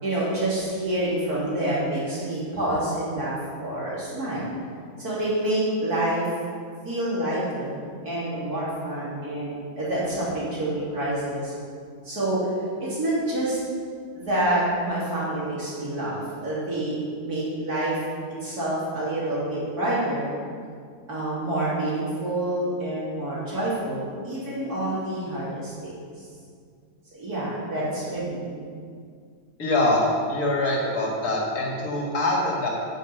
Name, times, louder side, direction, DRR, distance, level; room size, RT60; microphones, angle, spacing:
voice 1, 0.0-4.4 5.0-6.2 6.8-7.8 8.0-11.5 12.0-12.5 12.8-13.6 14.1-18.0 18.4-20.3 21.1-25.9 27.1-28.4, right 1 dB, 65° right, -8 dB, 3.9 m, -27 dB
voice 2, 29.6-32.7, left 1 dB, 65° left, -2 dB, 2.5 m, -24 dB
9.4 x 7.2 x 6.9 m, 2.2 s
omnidirectional pair, 1.7 m